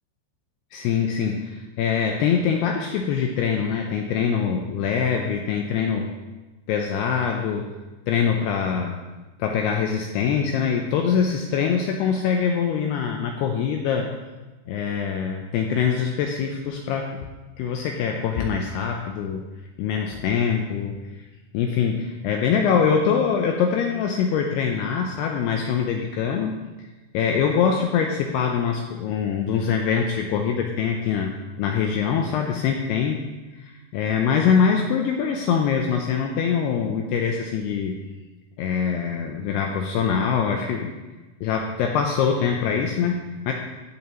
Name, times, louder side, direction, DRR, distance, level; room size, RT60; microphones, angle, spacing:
voice 1, 0.7-6.1 6.7-7.8 8.1-9.0 9.4-14.1 14.7-17.2 17.6-19.4 19.8-21.0 21.5-26.5 27.1-33.3 33.6-38.0 38.6-40.9 41.4-43.5, left 7 dB, 85° left, 2 dB, 2.4 m, -23 dB
17.5 x 6.6 x 3.0 m, 1.2 s
omnidirectional pair, 5.3 m